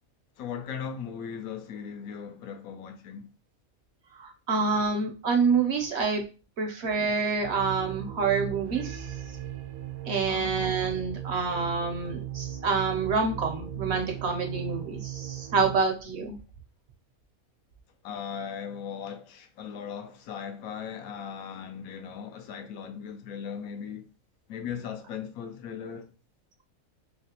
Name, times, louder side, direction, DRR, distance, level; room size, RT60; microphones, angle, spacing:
voice 1, 0.4-3.3 10.3-10.5 18.0-24.1 24.5-26.1, left 7 dB, 85° left, 1.0 m, -38 dB
voice 2, 4.2-6.2 6.6-9.0 10.1-16.3, right 4 dB, 60° right, 0.8 m, -27 dB
sound 1, 7.4-15.8, right 12 dB, 90° right, 1.0 m, -37 dB
3.1 x 2.9 x 2.8 m
omnidirectional pair, 1.5 m